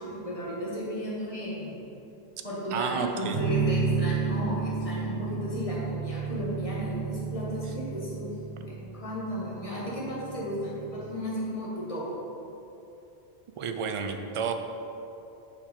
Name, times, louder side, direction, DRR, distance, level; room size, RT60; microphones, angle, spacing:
voice 1, 0.0-1.7 2.4-8.3 8.6-12.0, equal, 35° left, -6 dB, 1.6 m, -34 dB
voice 2, 2.7-3.4 13.6-14.5, right 6 dB, 60° right, 5 dB, 0.3 m, -31 dB
sound 1, 3.3-11.0, right 5 dB, 35° right, 1.0 m, -32 dB
5.4 x 4.9 x 5.1 m, 2.9 s
omnidirectional pair, 1.1 m